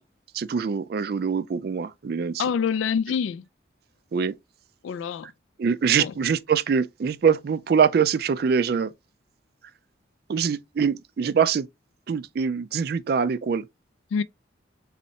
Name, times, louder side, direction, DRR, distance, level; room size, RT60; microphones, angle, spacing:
voice 1, 0.3-2.4 4.1-4.3 5.6-8.9 10.3-11.7 12.1-13.7, right 6 dB, 50° right, 0.3 m, -24 dB
voice 2, 2.4-3.4 4.8-5.3 6.0-6.1 14.1-14.2, left 6 dB, 80° left, 0.3 m, -26 dB
4.1 x 3.2 x 2.7 m
head